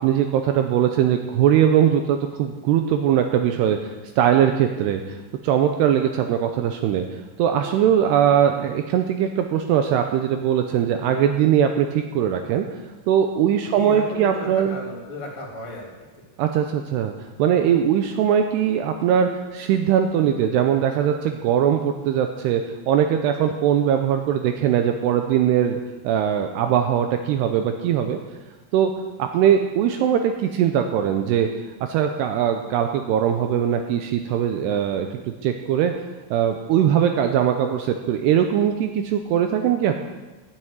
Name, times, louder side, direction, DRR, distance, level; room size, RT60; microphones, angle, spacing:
voice 1, 0.0-3.8 4.2-5.0 5.4-7.1 7.4-12.7 13.1-14.8 16.4-17.1 17.4-22.6 22.9-25.8 26.0-28.2 28.7-28.9 29.2-31.5 31.9-35.1 35.4-35.9 36.3-40.0, right 9 dB, 90° right, 6 dB, 2.4 m, -20 dB
voice 2, 13.7-15.9, left 1 dB, 20° left, -2 dB, 2.5 m, -34 dB
12.0 x 7.8 x 9.0 m, 1.2 s
omnidirectional pair, 5.5 m